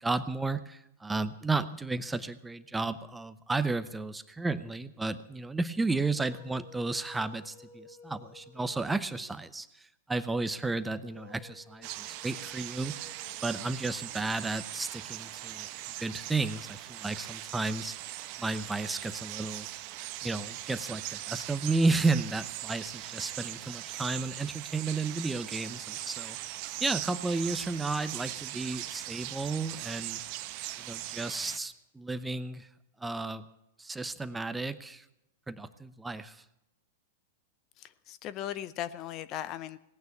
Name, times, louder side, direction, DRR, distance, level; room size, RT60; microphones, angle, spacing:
voice 1, 0.0-9.7 10.1-13.1 13.4-15.7 16.0-18.0 18.4-19.7 20.2-26.4 26.8-30.2 30.8-32.7 33.0-33.4 33.8-35.0 35.5-36.4, right 3 dB, 10° right, 13 dB, 0.8 m, -33 dB
sound 1, 5.8-9.6 10.9-14.5, left 4 dB, 70° left, 3.5 m, -55 dB
sound 2, 11.8-31.6, right 15 dB, 50° right, 1.0 m, -40 dB
voice 2, 37.8-39.8, left 11 dB, 40° left, 16 dB, 0.7 m, -38 dB
17.5 x 9.4 x 8.4 m, 0.86 s
hypercardioid pair, 110°, 0 cm